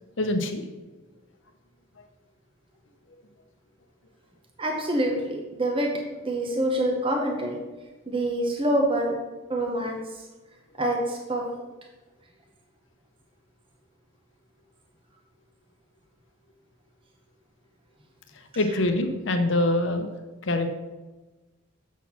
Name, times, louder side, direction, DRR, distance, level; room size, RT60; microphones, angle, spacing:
voice 1, 0.2-0.7 18.3-20.1 20.4-20.8, left 1 dB, 65° left, 6 dB, 0.8 m, -25 dB
voice 2, 4.6-5.9 6.3-7.6 8.1-9.1 9.5-10.0 10.8-11.4, right 1 dB, 25° right, 0 dB, 0.8 m, -26 dB
7.1 x 4.2 x 5.7 m, 1.2 s
head